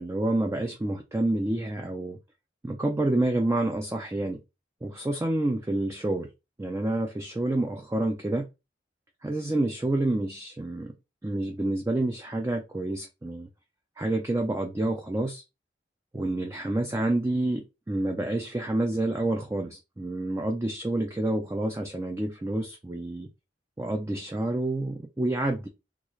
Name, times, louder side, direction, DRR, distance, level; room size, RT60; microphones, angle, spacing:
voice 1, 0.0-2.2 2.6-4.4 4.8-6.3 6.6-8.5 9.2-10.9 11.2-13.5 14.0-15.4 16.1-23.3 23.8-25.7, right 1 dB, 15° right, 0.4 m, -28 dB
3.7 x 2.3 x 3.1 m
head